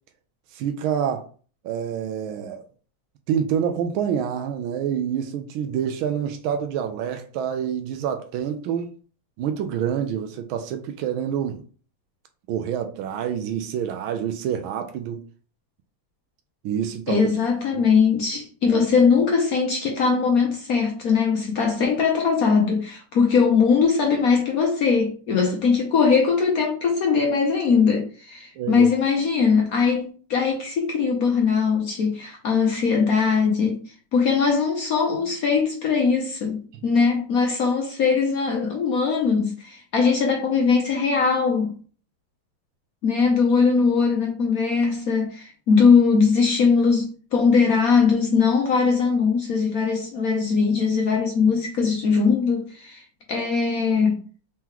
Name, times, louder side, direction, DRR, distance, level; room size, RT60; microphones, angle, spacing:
voice 1, 0.5-1.3 1.6-2.6 3.3-8.9 9.4-11.6 12.5-15.2 16.6-17.3 17.7-17.8 18.7-18.8 28.6-28.9 36.8-36.9, right 8 dB, 90° right, 1.4 m, -27 dB
voice 2, 17.1-33.8 34.1-41.7 43.0-54.2, left 5 dB, 60° left, 1.0 m, -20 dB
4.6 x 2.9 x 3.7 m
omnidirectional pair, 2.2 m